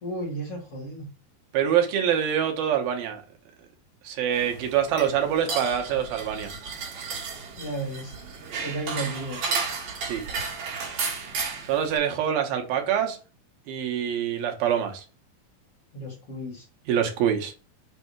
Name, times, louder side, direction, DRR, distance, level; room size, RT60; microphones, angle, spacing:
voice 1, 0.0-1.1 7.6-8.2 8.6-9.4 15.9-16.7, right 1 dB, 45° left, 2.5 m, -33 dB
voice 2, 1.5-3.2 4.0-6.5 10.0-10.2 11.7-13.2 13.7-15.0 16.9-17.5, right 9 dB, 80° right, 2.9 m, -25 dB
sound 1, 4.3-12.0, right 4 dB, 65° right, 3.1 m, -33 dB
7.6 x 2.7 x 6.0 m
omnidirectional pair, 4.2 m